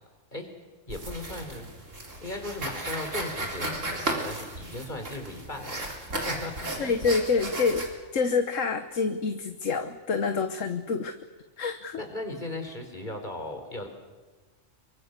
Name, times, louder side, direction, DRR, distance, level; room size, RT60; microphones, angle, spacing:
voice 1, 0.9-1.7 2.2-7.0 12.0-13.9, left 2 dB, 40° left, 4 dB, 4.4 m, -37 dB
sound 1, 0.9-7.9, right 2 dB, 80° right, 4.1 m, -35 dB
voice 2, 6.8-11.1 11.6-12.0, left 4 dB, 80° left, 8 dB, 1.6 m, -27 dB
28.5 x 24.0 x 6.8 m, 1.3 s
omnidirectional pair, 1.3 m